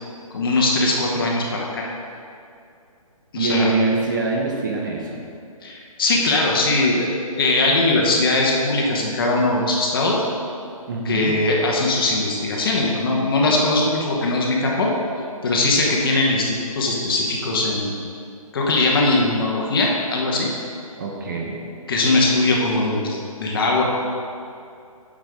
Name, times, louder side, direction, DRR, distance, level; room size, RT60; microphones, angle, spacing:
voice 1, 0.3-1.8 3.3-3.7 5.6-7.1 7.4-10.2 11.0-14.9 15.4-18.0 18.5-20.5 21.9-23.8, left 2 dB, 40° left, -2 dB, 1.1 m, -20 dB
voice 2, 3.4-5.2 10.9-11.4 21.0-21.6, right 3 dB, 35° right, 0 dB, 0.8 m, -24 dB
8.8 x 6.3 x 3.5 m, 2.5 s
hypercardioid pair, 160°, 19 cm